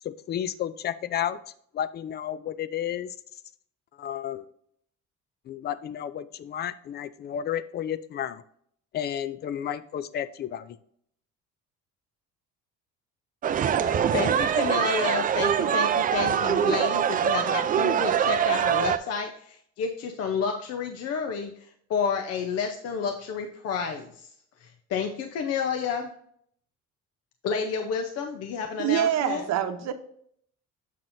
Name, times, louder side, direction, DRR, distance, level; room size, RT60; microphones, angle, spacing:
voice 1, 0.0-1.4 1.7-3.2 3.9-4.5 5.5-8.4 8.9-10.8, left 10 dB, 35° left, 15 dB, 0.4 m, -32 dB
sound 1, 13.4-19.0, right 8 dB, 30° right, 0.4 m, -24 dB
voice 2, 14.1-24.3 24.6-26.1 27.4-29.5, left 6 dB, 55° left, 4 dB, 0.8 m, -30 dB
voice 3, 28.8-29.9, right 11 dB, 65° right, 8 dB, 0.8 m, -25 dB
7.4 x 5.9 x 2.6 m, 0.66 s
cardioid pair, 140°, 29 cm